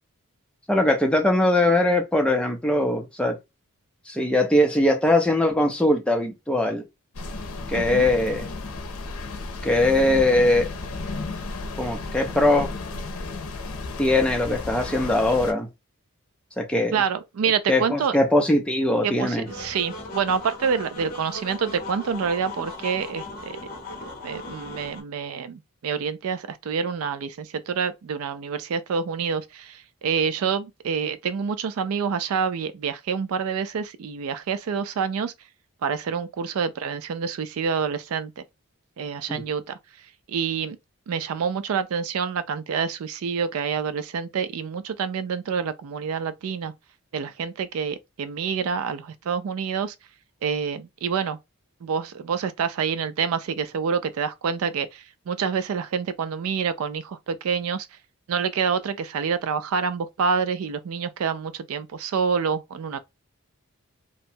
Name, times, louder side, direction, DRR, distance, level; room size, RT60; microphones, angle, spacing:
voice 1, 0.7-3.4 4.1-6.8 7.7-8.5 9.6-10.7 11.8-12.7 14.0-15.7 16.6-17.0 17.7-19.5 39.3-39.4, left 1 dB, 5° left, 0.5 m, -21 dB
sound 1, 7.1-15.5, left 3 dB, 75° left, 0.6 m, -33 dB
voice 2, 7.7-8.1 16.9-18.2 19.0-23.6 24.2-35.3 35.8-38.4 39.0-39.6 40.3-40.8 41.1-46.7 47.1-49.9 50.4-51.4 51.8-57.9 58.3-63.0, right 6 dB, 75° right, 0.4 m, -27 dB
sound 2, 19.5-25.0, left 2 dB, 40° left, 0.8 m, -38 dB
2.8 x 2.2 x 2.6 m
head